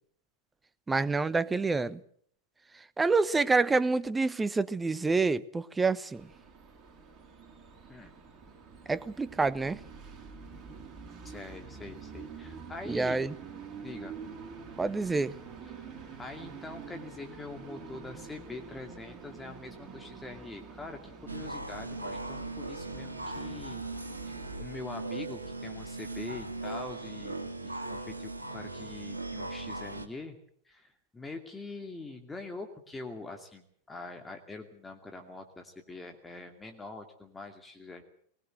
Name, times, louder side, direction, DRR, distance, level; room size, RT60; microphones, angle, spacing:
voice 1, 0.9-2.0 3.0-6.3 8.9-9.8 12.9-13.3 14.8-15.3, right 3 dB, 10° right, 1.0 m, -27 dB
Train, 6.1-24.6, right 5 dB, 30° right, 4.6 m, -47 dB
voice 2, 11.2-13.2 13.8-14.2 15.7-15.8 16.2-23.8 24.3-30.4 30.6-38.0, left 3 dB, 10° left, 2.5 m, -44 dB
sound 1, 21.3-30.1, right 2 dB, 80° right, 2.0 m, -39 dB
20.5 x 20.5 x 7.8 m
figure-of-eight pair, 90°, 0 cm